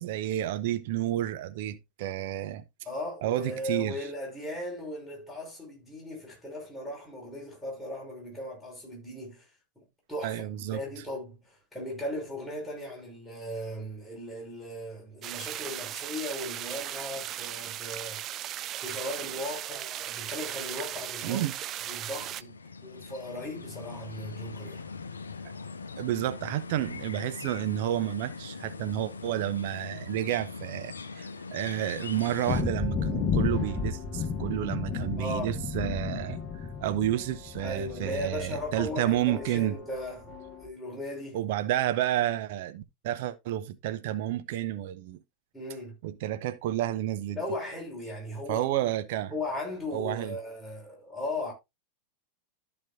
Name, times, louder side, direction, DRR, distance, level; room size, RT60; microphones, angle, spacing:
voice 1, 0.0-2.6 3.2-4.1 10.2-10.8 21.2-21.6 26.0-36.4 36.8-39.7 41.3-45.2 46.0-47.4 48.5-49.3 49.9-50.4, right 13 dB, 50° right, 0.8 m, -30 dB
voice 2, 2.8-9.5 9.7-18.2 18.8-21.4 21.9-22.5 22.8-24.8 35.2-35.5 37.6-40.3 40.6-41.4 45.5-45.9 47.3-48.7 49.3-51.5, left 1 dB, ahead, 5.1 m, -37 dB
sound 1, 15.2-22.4, right 12 dB, 30° right, 0.4 m, -37 dB
sound 2, 21.7-32.6, left 4 dB, 75° left, 0.6 m, -41 dB
sound 3, 32.5-40.7, left 5 dB, 30° left, 1.2 m, -33 dB
13.5 x 5.2 x 2.6 m
figure-of-eight pair, 90°, 0 cm